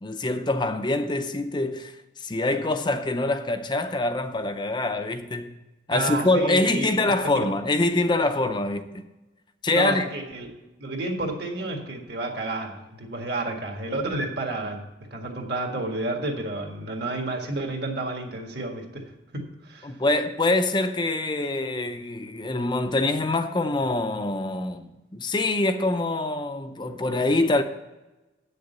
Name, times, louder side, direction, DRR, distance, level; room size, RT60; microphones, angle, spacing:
voice 1, 0.0-5.6 5.9-9.0 9.6-10.1 19.8-27.6, left 2 dB, 25° left, 0.5 m, -25 dB
voice 2, 5.9-7.1 9.7-10.5 10.8-14.8 15.1-19.0 19.3-20.0, right 2 dB, 55° right, 1.8 m, -30 dB
8.2 x 6.6 x 8.0 m
head